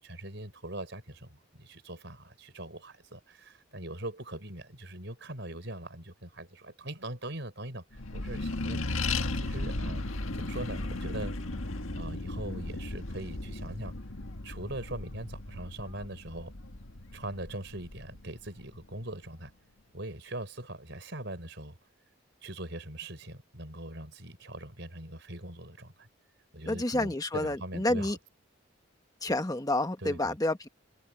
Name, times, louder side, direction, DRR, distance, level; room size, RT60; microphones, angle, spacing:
voice 1, 0.0-8.9 9.3-10.1 10.3-11.4 12.0-13.9 14.4-16.5 17.1-19.5 19.9-21.8 22.4-26.1 26.5-28.2 30.0-30.4, right 1 dB, 60° right, 5.7 m, -41 dB
Accelerating revving vroom, 7.9-18.9, left 2 dB, 80° left, 1.7 m, -36 dB
Bowed string instrument, 8.8-13.8, equal, 75° right, 7.1 m, -55 dB
voice 2, 26.7-28.2 29.2-30.7, left 1 dB, 15° left, 1.2 m, -29 dB
head